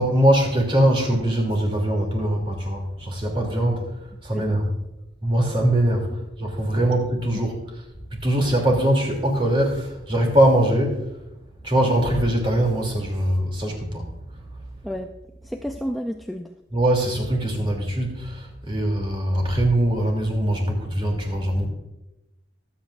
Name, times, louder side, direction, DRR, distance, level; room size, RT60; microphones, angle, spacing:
voice 1, 0.0-3.8 4.2-4.6 5.2-6.1 6.4-7.6 8.2-11.1 11.6-14.0 16.7-21.7, right 1 dB, 30° right, 0 dB, 3.0 m, -22 dB
voice 2, 15.4-16.5, equal, ahead, 3 dB, 0.5 m, -31 dB
24.0 x 8.3 x 2.6 m, 0.95 s
head